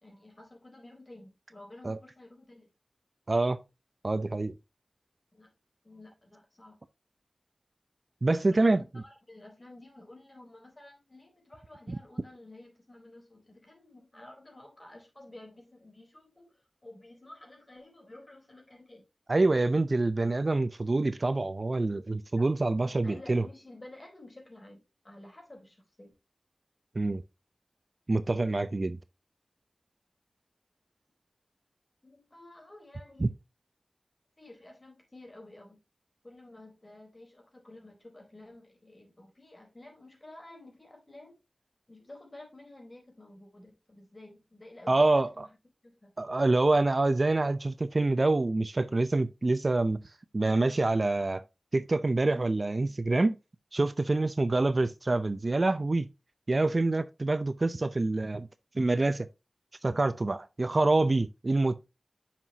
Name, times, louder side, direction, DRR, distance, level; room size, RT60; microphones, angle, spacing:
voice 1, 0.0-2.7 5.3-5.5 5.8-6.8 8.5-19.1 22.4-22.5 22.8-26.1 32.0-33.4 34.4-35.8 36.2-41.4 41.9-45.6 45.8-46.1, left 1 dB, 40° left, 4.0 m, -51 dB
voice 2, 3.3-3.6 4.0-4.5 8.2-8.8 11.9-12.0 19.3-23.5 26.9-27.2 28.1-29.0 33.2-33.3 44.9-45.5 46.2-50.0 50.3-51.4 51.7-53.4 53.7-56.1 56.5-58.5 58.7-59.3 59.8-61.8, right 2 dB, 55° right, 0.6 m, -26 dB
9.1 x 5.9 x 2.8 m
cardioid pair, 40°, 0 cm